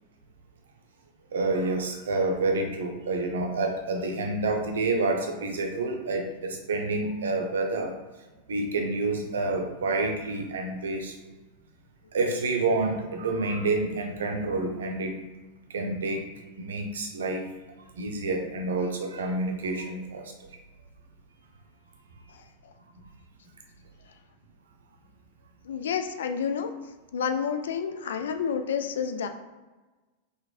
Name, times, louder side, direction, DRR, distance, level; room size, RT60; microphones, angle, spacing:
voice 1, 1.3-7.9 8.5-11.1 12.1-15.2 15.7-16.2 16.6-17.4 18.0-20.3, right 3 dB, 65° right, 2 dB, 0.6 m, -28 dB
voice 2, 25.6-26.7 27.1-29.3, left 7 dB, 60° left, 7 dB, 0.3 m, -29 dB
3.9 x 3.2 x 2.4 m, 1.2 s
figure-of-eight pair, 90°, 0 cm